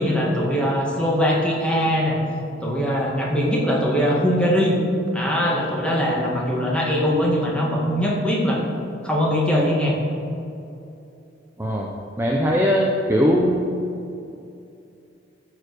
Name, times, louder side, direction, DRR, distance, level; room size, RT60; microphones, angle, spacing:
voice 1, 0.0-2.2 2.6-4.8 5.1-8.6 9.0-10.0, equal, 5° left, -4 dB, 1.9 m, -21 dB
voice 2, 12.2-13.6, equal, 15° right, -2 dB, 0.8 m, -20 dB
14.0 x 4.8 x 6.4 m, 2.6 s
head